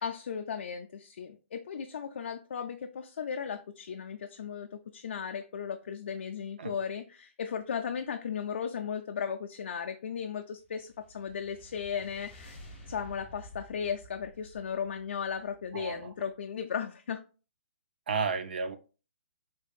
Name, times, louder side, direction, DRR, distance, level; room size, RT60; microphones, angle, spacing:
voice 1, 0.0-12.6 12.9-17.2, left 7 dB, 50° left, 0.3 m, -36 dB
sound 1, 10.6-16.1, equal, 5° left, 0.9 m, -51 dB
voice 2, 15.7-16.1 18.1-18.8, right 5 dB, 45° right, 0.4 m, -32 dB
3.4 x 3.4 x 2.3 m
hypercardioid pair, 175°, 7 cm